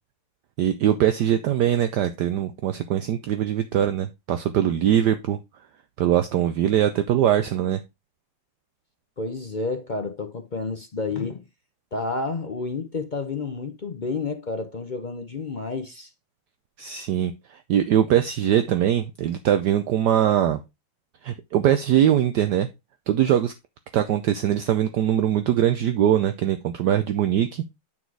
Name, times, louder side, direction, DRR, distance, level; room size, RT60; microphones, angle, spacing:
voice 1, 0.6-5.4 6.0-7.8 16.8-20.6 21.2-22.7 23.1-23.5 23.9-27.6, right 10 dB, 70° right, 1.2 m, -22 dB
voice 2, 9.2-11.4 11.9-16.1, left 3 dB, 65° left, 0.4 m, -30 dB
9.2 x 4.1 x 4.7 m
omnidirectional pair, 2.1 m